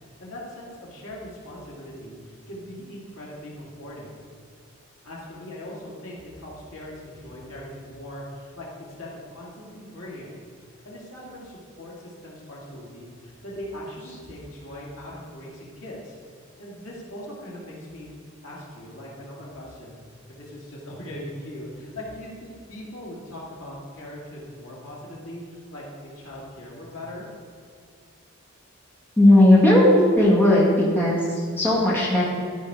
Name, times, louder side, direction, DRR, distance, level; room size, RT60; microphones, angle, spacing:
voice 1, 0.2-4.1 5.0-10.4 10.8-16.2 16.6-18.1 18.4-20.0 20.3-27.3, left 1 dB, 75° left, -5 dB, 2.3 m, -40 dB
voice 2, 29.2-30.7 30.9-32.2, left 1 dB, 10° left, -6 dB, 2.0 m, -16 dB
13.0 x 5.2 x 4.8 m, 2.2 s
head